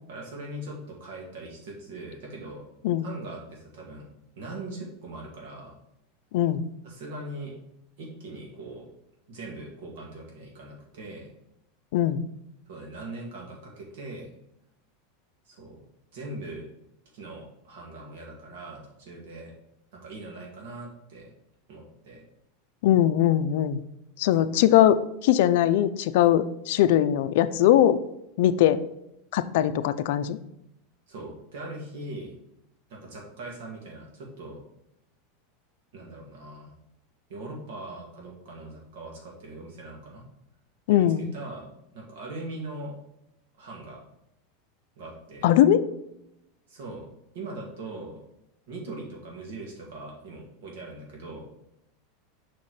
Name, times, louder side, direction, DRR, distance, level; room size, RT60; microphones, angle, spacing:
voice 1, 0.1-2.7 3.0-4.1 4.4-5.7 6.8-7.5 8.0-8.9 9.3-11.3 12.7-14.3 15.5-15.8 16.1-16.6 17.1-19.5 19.9-21.3 21.7-22.2 29.6-29.7 31.1-32.3 32.9-34.6 35.9-36.7 37.3-40.2 40.9-41.7 41.9-42.9 43.6-44.0 45.0-45.5 46.7-47.1 47.3-48.2 48.7-51.4, right 2 dB, 70° right, -2 dB, 2.1 m, -40 dB
voice 2, 6.3-6.7 11.9-12.2 22.8-23.8 24.2-28.0 28.4-28.8 29.3-30.4 40.9-41.3 45.4-45.8, left 11 dB, 65° left, 11 dB, 0.4 m, -21 dB
5.8 x 4.3 x 4.7 m, 0.83 s
supercardioid pair, 160°, 0 cm